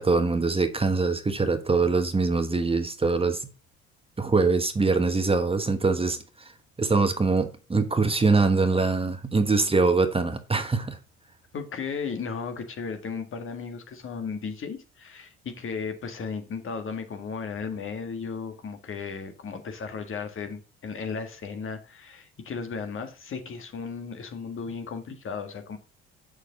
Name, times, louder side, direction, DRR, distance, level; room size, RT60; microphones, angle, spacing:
voice 1, 0.0-3.5 4.2-6.5 6.8-11.0, right 3 dB, 20° right, 1.2 m, -23 dB
voice 2, 11.5-25.8, left 5 dB, 45° left, 1.7 m, -35 dB
6.6 x 6.4 x 3.8 m
hypercardioid pair, 65°, 29 cm